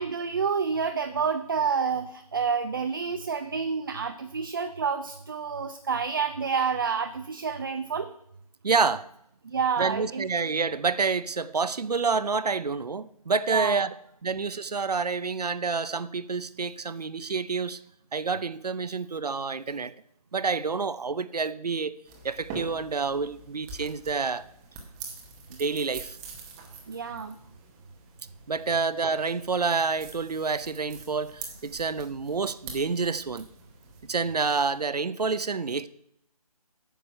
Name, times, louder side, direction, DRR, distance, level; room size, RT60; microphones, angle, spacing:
voice 1, 0.0-8.1 9.4-10.3 13.5-13.8 26.9-27.4, right 6 dB, 35° right, 0.5 m, -29 dB
voice 2, 8.6-9.1 9.8-13.9 14.2-17.8 18.1-19.9 20.3-21.9 22.2-24.4 25.5-26.2 28.5-33.5 34.1-35.9, right 4 dB, 85° right, 0.6 m, -28 dB
sound 1, 22.1-34.8, right 4 dB, 10° right, 0.8 m, -45 dB
9.1 x 6.5 x 5.3 m
figure-of-eight pair, 160°, 20 cm